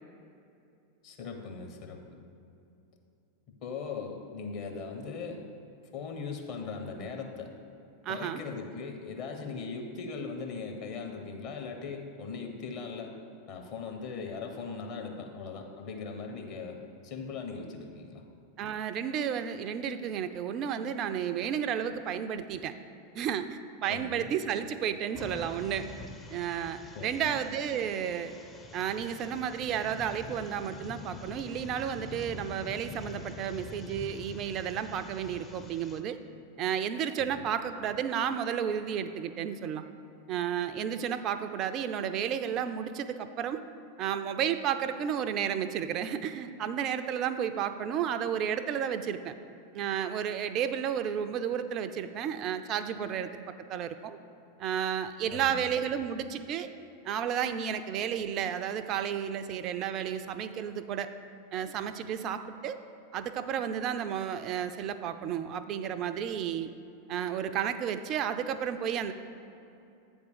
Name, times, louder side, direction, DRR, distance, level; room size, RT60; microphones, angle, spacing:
voice 1, 1.0-2.0 3.6-5.4 5.9-7.5 8.1-13.1 13.5-18.2 23.9-24.3 26.9-27.3 37.2-37.5 55.3-55.8, left 4 dB, 40° left, 3 dB, 1.0 m, -39 dB
voice 2, 8.0-8.4 18.6-22.7 23.1-25.9 26.3-28.3 28.7-36.2 36.6-39.9 40.3-43.6 44.0-49.3 49.7-54.2 54.6-56.7 57.0-61.1 61.5-62.8 63.1-66.7 67.1-69.1, right 8 dB, 35° right, 10 dB, 0.3 m, -32 dB
sound 1, 25.1-36.0, left 4 dB, 20° left, 0.5 m, -45 dB
8.2 x 3.5 x 6.7 m, 2.7 s
figure-of-eight pair, 90°, 0 cm